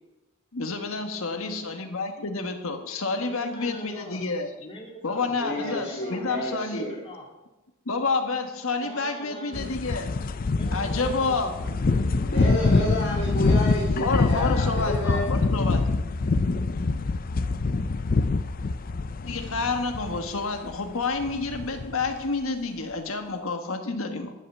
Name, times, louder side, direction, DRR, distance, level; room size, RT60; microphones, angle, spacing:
voice 1, 0.5-4.5 5.0-6.9 7.8-10.1 10.7-11.5 13.9-15.9 19.2-24.3, left 3 dB, 75° left, 6 dB, 1.4 m, -29 dB
voice 2, 3.1-4.2 4.6-7.3 8.8-9.8 10.6-12.9, equal, 25° left, -1 dB, 2.6 m, -43 dB
voice 3, 5.4-7.0 12.2-15.2, equal, 60° left, -5 dB, 2.8 m, -30 dB
sound 1, 9.5-20.9 21.2-22.1, left 3 dB, 45° left, 0.5 m, -25 dB
12.5 x 5.7 x 7.8 m, 1.1 s
head